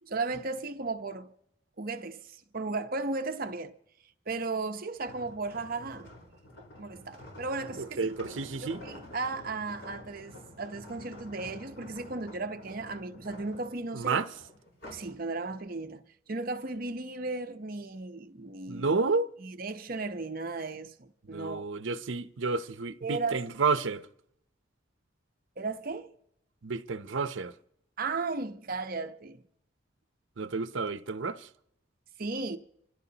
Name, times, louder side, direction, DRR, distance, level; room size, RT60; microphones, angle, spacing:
voice 1, 0.0-1.3 1.8-3.7 4.3-6.1 6.8-8.1 8.6-14.2 14.9-18.9 19.4-21.6 23.0-23.4 25.6-26.1 28.0-29.4 32.2-32.6, right 3 dB, 50° right, 0.8 m, -35 dB
sound 1, 5.0-15.2 15.6-15.9, left 1 dB, 75° left, 4.6 m, -49 dB
voice 2, 7.8-8.8 13.9-14.3 18.7-19.3 21.3-24.1 26.6-27.6 30.4-31.5, right 4 dB, 75° right, 0.7 m, -30 dB
26.0 x 15.0 x 2.9 m
head